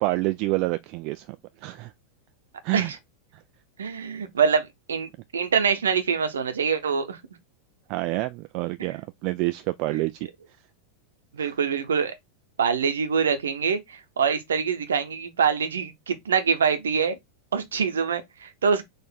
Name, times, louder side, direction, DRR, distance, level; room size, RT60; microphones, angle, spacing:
voice 1, 0.0-1.4 1.6-1.9 2.6-2.9 3.3-3.4 7.9-10.3 11.4-11.6, right 20 dB, 40° right, 0.3 m, -28 dB
voice 2, 3.8-7.2 9.9-10.0 11.3-12.1 12.6-17.2 17.5-18.8, right 6 dB, 65° right, 0.8 m, -25 dB
4.1 x 2.5 x 4.5 m
figure-of-eight pair, 90°, 0 cm